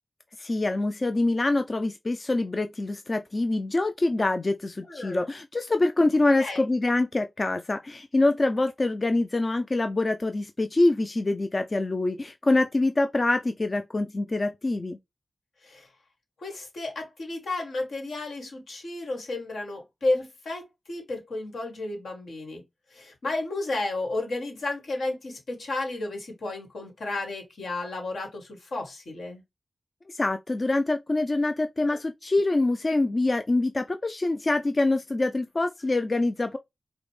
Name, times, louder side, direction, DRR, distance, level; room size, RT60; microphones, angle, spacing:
voice 1, 0.4-15.0 30.1-36.6, left 2 dB, 45° left, 0.4 m, -25 dB
voice 2, 4.9-5.2 6.4-6.7 15.6-15.9 16.4-22.6 22.9-29.4 31.8-32.0, left 2 dB, 85° left, 1.4 m, -32 dB
4.8 x 2.1 x 3.1 m
cardioid pair, 45°, 0 cm